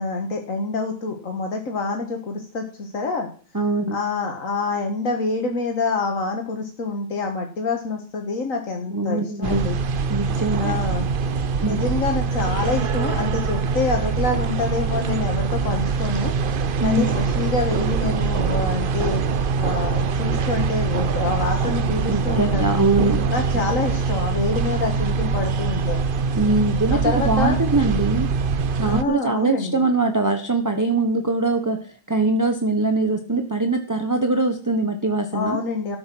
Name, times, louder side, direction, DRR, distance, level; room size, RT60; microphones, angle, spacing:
voice 1, 0.0-3.3 3.9-9.8 10.6-11.1 11.6-16.3 16.8-19.2 19.6-22.8 23.3-26.0 26.9-27.6 28.9-29.8 35.3-36.0, left 3 dB, 85° left, 3 dB, 2.0 m, -26 dB
voice 2, 3.5-4.0 8.9-9.6 10.1-10.8 11.6-11.8 16.8-17.2 22.1-23.2 26.3-28.3 28.8-35.6, right 2 dB, 15° right, 6 dB, 1.0 m, -22 dB
sound 1, 9.4-29.0, right 5 dB, 50° right, 0.8 m, -23 dB
13.0 x 8.9 x 6.1 m, 0.40 s
omnidirectional pair, 1.3 m